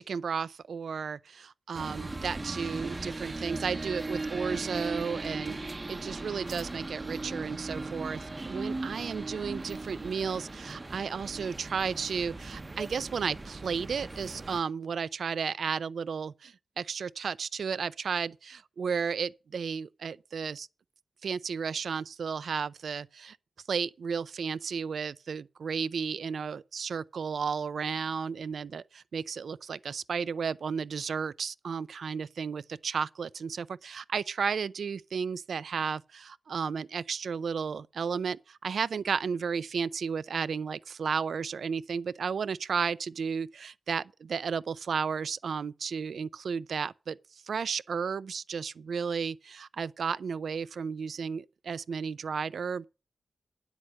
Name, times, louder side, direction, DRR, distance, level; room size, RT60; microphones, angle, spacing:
voice 1, 0.0-20.7 21.2-23.4 23.7-47.2 47.5-52.8, right 6 dB, 80° right, 0.5 m, -33 dB
sound 1, 1.7-14.6, right 2 dB, 25° right, 0.8 m, -38 dB
10.0 x 8.1 x 6.4 m
wide cardioid pair, 105°, 0 cm